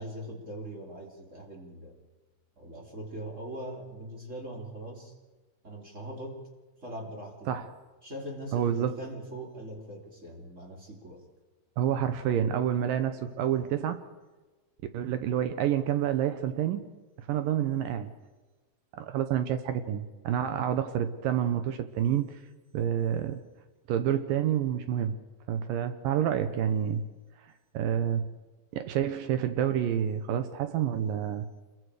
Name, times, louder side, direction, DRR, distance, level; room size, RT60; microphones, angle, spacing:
voice 1, 0.0-1.9 2.6-5.1 5.6-6.4 6.8-7.6 8.0-11.2, right 1 dB, 20° right, 0 dB, 2.8 m, -41 dB
voice 2, 8.5-8.9 11.8-14.0 14.9-16.9 17.3-18.1 18.9-22.4 22.7-23.4 23.9-25.2 25.5-27.0 27.7-28.3 28.7-31.5, right 9 dB, 75° right, 10 dB, 2.4 m, -28 dB
27.5 x 22.0 x 4.9 m, 1.2 s
omnidirectional pair, 4.4 m